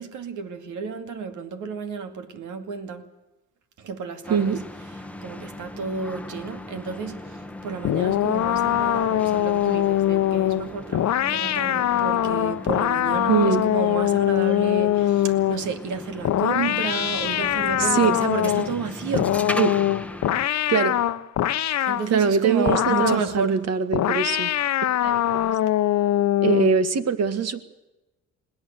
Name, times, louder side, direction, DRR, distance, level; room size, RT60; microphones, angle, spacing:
voice 1, 0.0-3.1 3.8-4.6 4.9-19.4 21.8-23.6, right 5 dB, 80° right, 2.3 m, -31 dB
sound 1, 4.2-20.5, left 1 dB, 5° left, 1.0 m, -38 dB
voice 2, 4.3-4.6 13.3-13.6 17.8-18.2 19.5-19.7 20.7-21.0 21.8-24.5 25.0-25.4 26.4-27.6, right 6 dB, 55° right, 1.9 m, -22 dB
sound 2, 7.8-15.7 16.2-18.8 19.1-22.1 22.7-23.3 23.9-26.8, left 12 dB, 65° left, 0.9 m, -23 dB
21.5 x 17.5 x 8.1 m
cardioid pair, 90°, 30 cm